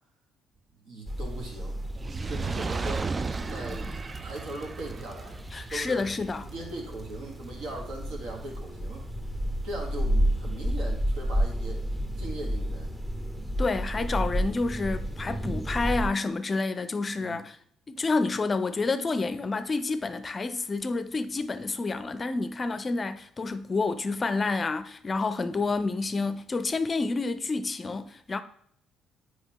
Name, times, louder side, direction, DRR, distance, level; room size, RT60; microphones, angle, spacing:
voice 1, 0.7-1.8 2.1-3.1 3.5-3.8 4.2-5.4 5.7-6.1 6.4-9.1 9.6-11.8 12.2-12.9 17.2-17.5, right 2 dB, 70° right, 1.5 m, -39 dB
sound 1, 1.1-16.1, equal, 15° right, 1.0 m, -32 dB
Fire, 1.9-8.3 9.0-9.1, right 4 dB, 30° right, 0.3 m, -35 dB
voice 2, 5.5-6.5 13.6-17.6 17.9-28.4, left 3 dB, 35° left, 0.5 m, -29 dB
7.9 x 4.8 x 3.0 m
hypercardioid pair, 50°, 0 cm